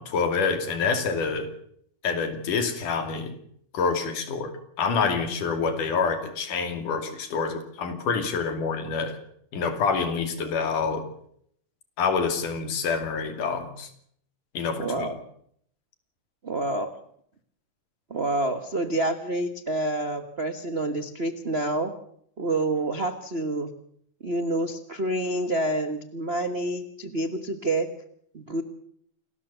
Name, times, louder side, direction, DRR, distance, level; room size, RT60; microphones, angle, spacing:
voice 1, 0.0-1.5 2.0-3.4 3.7-4.5 4.8-9.2 9.5-11.1 12.0-13.9 14.5-15.2, left 5 dB, 80° left, 8 dB, 4.2 m, -27 dB
voice 2, 14.8-15.2 16.4-16.9 18.1-21.9 22.4-23.7 24.2-27.9 28.3-28.6, right 2 dB, 50° right, 8 dB, 0.7 m, -28 dB
28.0 x 13.5 x 6.9 m, 0.67 s
omnidirectional pair, 3.6 m